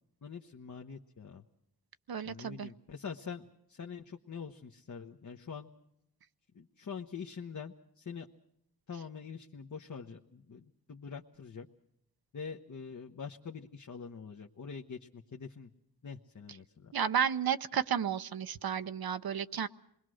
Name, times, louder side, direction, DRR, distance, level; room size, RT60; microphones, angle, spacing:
voice 1, 0.2-1.4 2.2-5.7 6.5-8.3 8.9-11.7 12.3-15.7 16.0-16.9, left 6 dB, 50° left, 3 dB, 1.1 m, -45 dB
voice 2, 2.1-2.7 16.9-19.7, right 8 dB, 70° right, 11 dB, 0.8 m, -32 dB
27.0 x 21.0 x 6.3 m, 0.77 s
cardioid pair, 50°, 38 cm